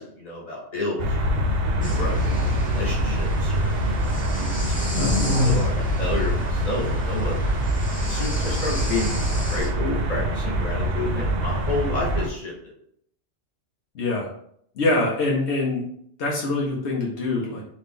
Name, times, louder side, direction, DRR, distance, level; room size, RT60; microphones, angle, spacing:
voice 1, 0.0-1.4 1.8-2.3 2.6-5.1 5.4-7.3 8.0-9.2 9.5-12.7, left 2 dB, 40° left, -4 dB, 1.2 m, -31 dB
sound 1, 1.0-12.3, right 1 dB, 65° right, 0.8 m, -25 dB
sound 2, 1.8-9.7, left 1 dB, 10° left, 0.5 m, -29 dB
voice 2, 13.9-14.3 14.8-15.8 16.2-17.6, left 2 dB, 75° left, -2 dB, 1.0 m, -24 dB
3.0 x 2.5 x 3.5 m, 0.67 s
omnidirectional pair, 1.1 m